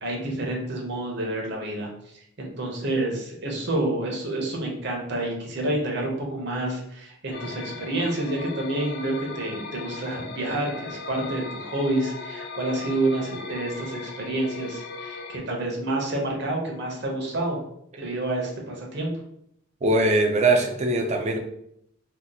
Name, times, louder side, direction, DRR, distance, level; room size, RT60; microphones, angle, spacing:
voice 1, 0.0-17.6 18.0-19.1, right 1 dB, 60° right, 0 dB, 0.8 m, -28 dB
sound 1, 7.3-15.4, left 4 dB, 55° left, 0.3 m, -38 dB
voice 2, 19.8-21.4, right 2 dB, 35° right, 3 dB, 0.4 m, -21 dB
2.7 x 2.0 x 3.8 m, 0.73 s
head